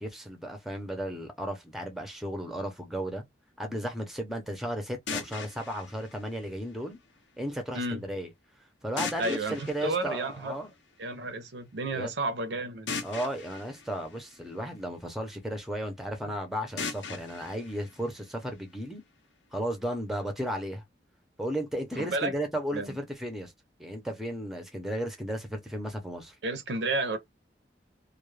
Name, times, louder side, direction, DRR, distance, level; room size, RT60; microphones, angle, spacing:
voice 1, 0.0-3.2 3.6-7.0 7.4-8.3 8.8-10.7 11.9-12.1 13.0-19.0 19.5-20.8 21.4-23.5 23.8-26.3, equal, ahead, 0.5 m, -34 dB
sound 1, 5.1-7.1 9.0-10.9 12.9-15.1 16.8-18.8, left 5 dB, 80° left, 0.6 m, -40 dB
voice 2, 9.2-10.5 11.0-12.9 16.2-16.3 22.0-22.3 22.7-23.0 26.4-27.2, right 2 dB, 70° right, 0.6 m, -31 dB
2.2 x 2.1 x 3.1 m
head